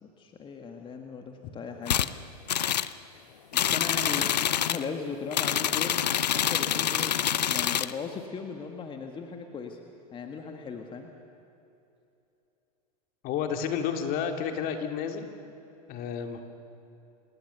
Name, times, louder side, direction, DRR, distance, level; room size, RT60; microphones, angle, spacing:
voice 1, 0.0-2.1 3.5-4.3 4.6-6.1 6.3-9.8 10.1-11.1, left 5 dB, 25° left, 4 dB, 1.8 m, -38 dB
sound 1, 1.9-2.1 2.5-2.9 3.5-4.8 5.3-7.9, left 10 dB, 80° left, 0.7 m, -26 dB
voice 2, 13.2-15.3 15.9-16.4, left 7 dB, 45° left, 5 dB, 2.4 m, -31 dB
26.5 x 19.5 x 6.9 m, 2.8 s
hypercardioid pair, 100°, 21 cm